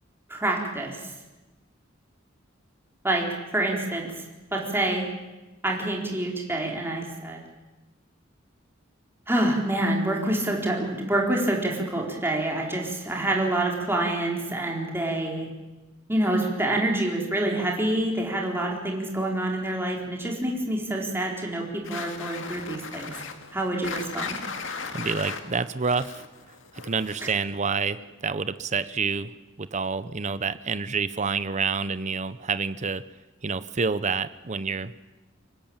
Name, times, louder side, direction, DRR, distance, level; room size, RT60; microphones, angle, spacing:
voice 1, 0.3-1.1 3.0-3.3 3.5-4.1 4.5-5.1 5.6-7.4 9.3-15.5 16.1-23.1 23.5-24.4, right 1 dB, 10° right, 0 dB, 4.1 m, -27 dB
sound 1, 21.8-27.5, left 5 dB, 70° left, 2.2 m, -37 dB
voice 2, 24.9-26.2 26.7-33.0 33.4-35.1, right 5 dB, 35° right, 14 dB, 0.8 m, -28 dB
24.5 x 20.0 x 8.9 m, 1.1 s
head